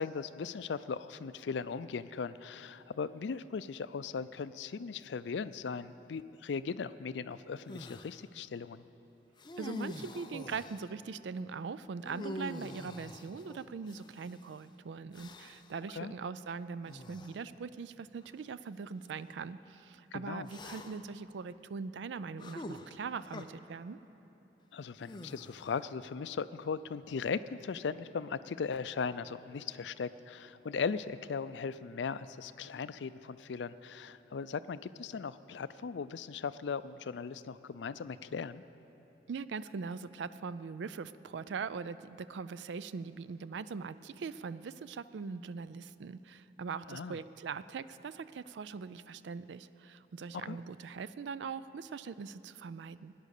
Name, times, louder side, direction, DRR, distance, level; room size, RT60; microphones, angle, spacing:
voice 1, 0.0-8.8 15.9-16.1 20.1-20.5 24.7-38.6 46.9-47.2 50.5-50.6, left 5 dB, 85° left, 14 dB, 0.4 m, -38 dB
sound 1, 7.7-8.2 9.4-10.9 12.0-14.4 15.1-15.8 16.9-17.4 18.2-18.3 20.5-21.2 22.4-23.5 25.0-25.9, left 1 dB, 25° left, 0.5 m, -45 dB
voice 2, 9.6-24.0 39.3-53.1, right 5 dB, 85° right, 15 dB, 0.4 m, -41 dB
17.5 x 10.0 x 6.6 m, 3.0 s
head